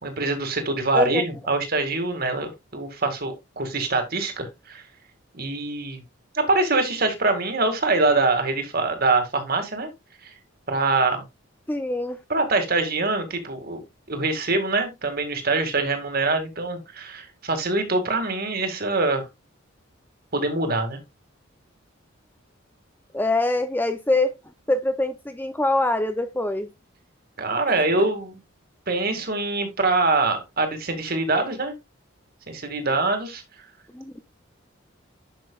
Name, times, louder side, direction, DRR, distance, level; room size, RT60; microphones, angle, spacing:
voice 1, 0.0-4.8 5.3-6.0 6.3-9.9 10.2-10.3 10.7-11.2 12.3-13.8 14.1-19.3 20.3-21.0 27.4-28.4 28.9-31.7 32.5-33.4, right 3 dB, 45° right, 2.0 m, -24 dB
voice 2, 11.7-12.2 23.1-24.4 24.7-26.7 33.9-34.1, left 2 dB, 10° left, 0.5 m, -24 dB
11.0 x 6.1 x 2.3 m
head